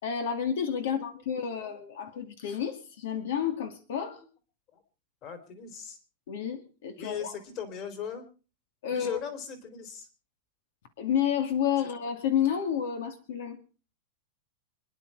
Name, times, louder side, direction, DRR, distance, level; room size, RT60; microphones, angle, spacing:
voice 1, 0.0-4.2 6.3-7.3 8.8-9.2 11.0-13.6, left 8 dB, 70° left, 8 dB, 2.5 m, -30 dB
voice 2, 0.8-1.7 4.7-4.8 5.2-6.0 7.0-8.2 8.9-10.1, left 7 dB, 30° left, 9 dB, 3.3 m, -39 dB
27.0 x 10.5 x 4.8 m, 0.38 s
supercardioid pair, 160°, 0 cm